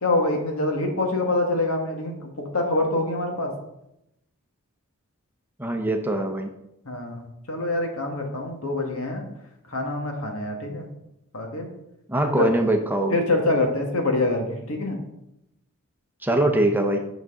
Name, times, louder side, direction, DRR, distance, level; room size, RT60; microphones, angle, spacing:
voice 1, 0.0-2.1 2.5-3.5 6.8-9.2 9.7-10.9 11.3-11.7 12.2-12.5 13.1-15.0, left 2 dB, 80° left, 2 dB, 1.7 m, -25 dB
voice 2, 5.6-6.5 12.1-13.2 16.2-17.0, right 1 dB, 10° right, 4 dB, 0.7 m, -22 dB
8.4 x 6.0 x 3.8 m, 0.83 s
head